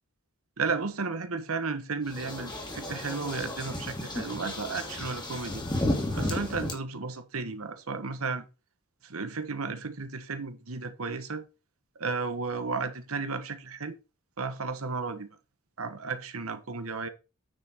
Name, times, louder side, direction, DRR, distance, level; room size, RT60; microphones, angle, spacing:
voice 1, 0.6-5.6 6.1-8.4 9.0-11.4 11.9-14.0 14.4-15.3 15.8-17.1, right 4 dB, 70° right, 1.3 m, -33 dB
sound 1, 2.1-6.7, left 1 dB, 20° left, 2.4 m, -33 dB
9.2 x 5.9 x 4.4 m
head